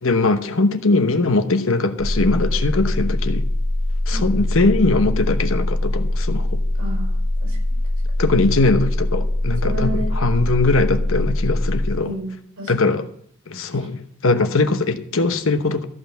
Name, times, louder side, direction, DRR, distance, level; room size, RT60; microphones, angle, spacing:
voice 1, 0.0-3.5 4.1-6.6 8.2-12.1 12.7-13.1 13.5-15.9, left 3 dB, 65° left, 9 dB, 1.0 m, -20 dB
sound 1, 2.0-12.0, left 1 dB, 90° left, 1.3 m, -22 dB
voice 2, 6.8-7.6 9.6-10.1 12.0-13.0, right 1 dB, 90° right, 0 dB, 6.2 m, -31 dB
14.0 x 5.8 x 7.0 m, 0.65 s
head